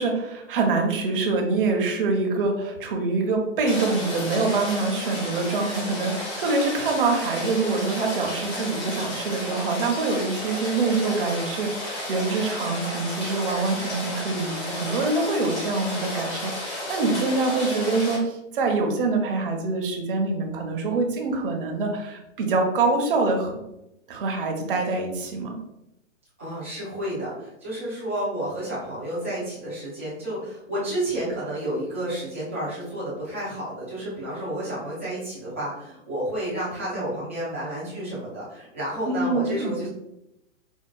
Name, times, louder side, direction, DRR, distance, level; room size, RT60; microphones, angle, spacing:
voice 1, 0.0-23.6 24.1-25.6 39.0-39.7, right 3 dB, 45° right, 2 dB, 0.7 m, -25 dB
Rain, 3.7-18.2, left 1 dB, 25° left, 0.7 m, -32 dB
voice 2, 26.4-39.9, right 1 dB, 10° right, -11 dB, 0.4 m, -31 dB
4.4 x 2.2 x 2.2 m, 0.87 s
hypercardioid pair, 160°, 39 cm